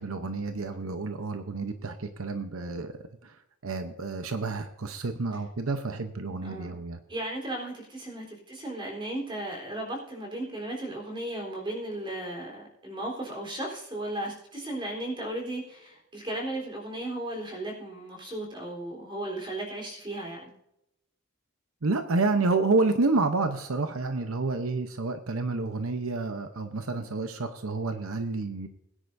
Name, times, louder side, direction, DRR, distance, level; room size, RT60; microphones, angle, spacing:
voice 1, 0.0-2.9 3.2-7.0 21.8-28.7, right 3 dB, 80° right, 8 dB, 0.9 m, -29 dB
voice 2, 6.4-6.8 7.1-20.5, right 1 dB, 25° right, 0 dB, 3.8 m, -35 dB
21.0 x 10.0 x 2.7 m, 0.82 s
head